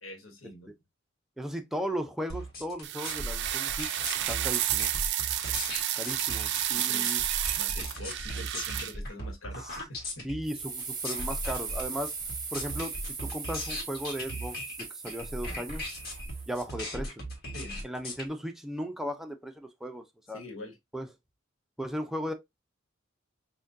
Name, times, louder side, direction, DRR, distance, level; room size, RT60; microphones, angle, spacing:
voice 1, 0.0-0.7 6.7-7.1 7.6-10.3 17.5-17.8 20.3-20.8, left 1 dB, 70° left, 1.2 m, -45 dB
voice 2, 1.4-3.9 4.3-4.9 5.9-7.2 10.2-12.1 12.5-15.8 16.5-17.2 17.8-20.4 20.9-21.1 21.8-22.3, equal, ahead, 0.5 m, -36 dB
sound 1, 2.3-18.2, equal, 50° left, 1.4 m, -38 dB
sound 2, 2.8-8.9, right 12 dB, 60° right, 0.4 m, -30 dB
sound 3, 10.5-16.6, right 5 dB, 20° right, 0.9 m, -39 dB
6.1 x 2.3 x 2.6 m
head